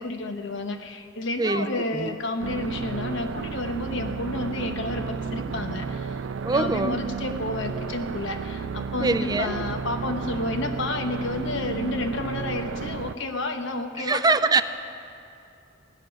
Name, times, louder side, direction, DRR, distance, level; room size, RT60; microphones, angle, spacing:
voice 1, 0.0-6.2 6.5-14.6, left 2 dB, 70° left, 6 dB, 1.1 m, -30 dB
sound 1, 2.4-13.2, right 5 dB, 70° right, 0.5 m, -32 dB
voice 2, 6.4-7.0 9.0-9.6 14.0-14.6, right 3 dB, 20° right, 11 dB, 0.5 m, -23 dB
17.0 x 6.8 x 9.3 m, 2.6 s
head